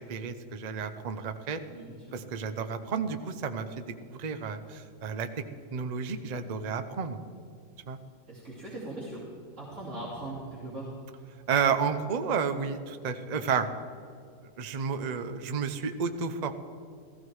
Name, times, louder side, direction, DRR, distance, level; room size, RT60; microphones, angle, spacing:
voice 1, 0.1-1.6 2.1-3.9 4.2-5.3 5.7-7.2 7.9-8.0 11.5-13.7 14.6-16.5, right 6 dB, 80° right, 8 dB, 0.3 m, -31 dB
voice 2, 1.7-2.2 8.3-9.2 9.6-10.9, right 2 dB, 45° right, -7 dB, 3.2 m, -40 dB
15.5 x 15.0 x 4.8 m, 2.4 s
omnidirectional pair, 1.9 m